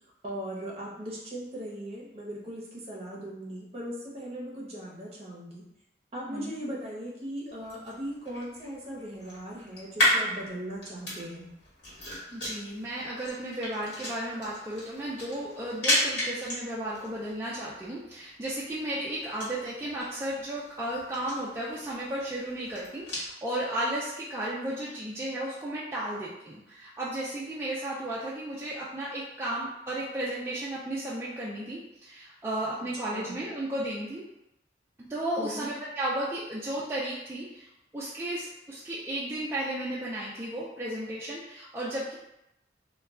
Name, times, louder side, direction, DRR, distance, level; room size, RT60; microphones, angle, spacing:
voice 1, 0.2-5.6 6.1-11.5 33.1-33.4 35.4-35.7, right 1 dB, 35° right, -4 dB, 0.7 m, -38 dB
sound 1, 7.5-23.3, left 1 dB, 65° left, 1.3 m, -35 dB
voice 2, 12.0-34.2 35.0-37.7 37.9-42.1, right 1 dB, 15° right, -8 dB, 0.3 m, -34 dB
2.2 x 2.2 x 3.5 m, 0.87 s
head